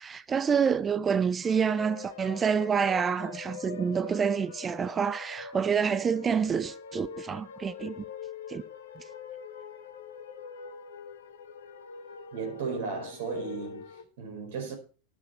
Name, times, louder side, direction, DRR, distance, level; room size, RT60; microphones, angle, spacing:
voice 1, 0.0-8.0 8.5-8.6 9.0-9.1, right 6 dB, 20° right, 0.8 m, -28 dB
sound 1, 1.4-14.0, left 6 dB, 65° left, 1.3 m, -43 dB
voice 2, 12.3-14.7, right 4 dB, 55° right, 4.8 m, -35 dB
12.5 x 10.5 x 4.5 m
figure-of-eight pair, 90°, 0 cm